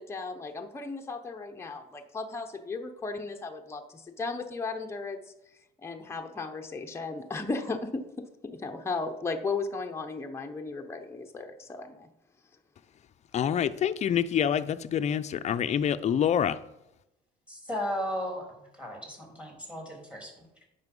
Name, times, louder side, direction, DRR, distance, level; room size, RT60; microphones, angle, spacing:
voice 1, 0.0-5.2 5.8-12.1, left 3 dB, 15° left, 0.8 m, -35 dB
voice 2, 13.3-16.6, left 9 dB, 40° left, 0.5 m, -26 dB
voice 3, 17.5-18.5 18.7-20.6, equal, 5° right, 3.2 m, -35 dB
9.4 x 5.7 x 5.3 m
cardioid pair, 110°, 17 cm